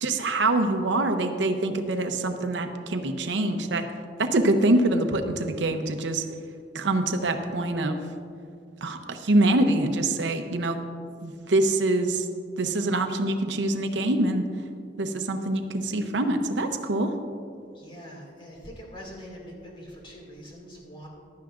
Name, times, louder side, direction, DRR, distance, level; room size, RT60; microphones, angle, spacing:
voice 1, 0.0-3.8 4.2-6.2 6.7-8.0 8.8-10.8 11.2-12.3 12.6-14.4 15.0-17.1, right 2 dB, 80° right, 6 dB, 0.7 m, -25 dB
voice 2, 17.7-21.1, equal, 30° left, -2 dB, 2.3 m, -43 dB
15.0 x 11.5 x 2.5 m, 2.4 s
head